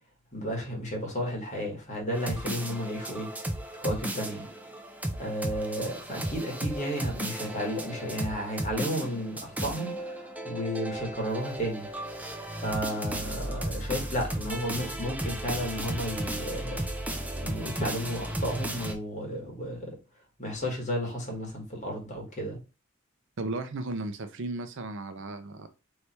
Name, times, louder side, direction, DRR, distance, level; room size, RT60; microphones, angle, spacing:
voice 1, 0.3-3.3 3.8-4.5 5.2-11.9 12.6-16.8 17.4-19.9 20.4-22.6, equal, 35° left, 1.7 m, -33 dB
sound 1, 2.1-18.9, right 1 dB, 5° right, 0.6 m, -35 dB
voice 2, 23.4-25.7, right 2 dB, 60° right, 0.6 m, -35 dB
3.3 x 3.2 x 4.2 m
head